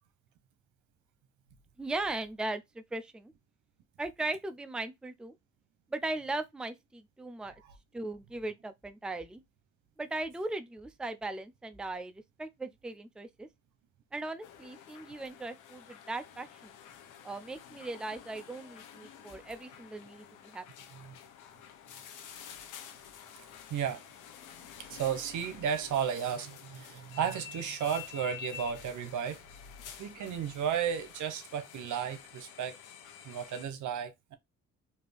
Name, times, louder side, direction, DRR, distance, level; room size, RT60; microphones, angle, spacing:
voice 1, 1.8-3.3 4.0-5.3 5.9-7.5 7.9-9.4 10.0-12.1 12.4-13.5 14.1-16.7 17.2-20.6, right 2 dB, 5° right, 0.5 m, -38 dB
sound 1, 14.4-33.7, left 9 dB, 90° left, 1.0 m, -50 dB
voice 2, 23.7-24.0 24.8-29.4 30.0-32.8 33.2-34.4, right 8 dB, 75° right, 1.0 m, -34 dB
4.2 x 2.8 x 3.4 m
cardioid pair, 90°, 30 cm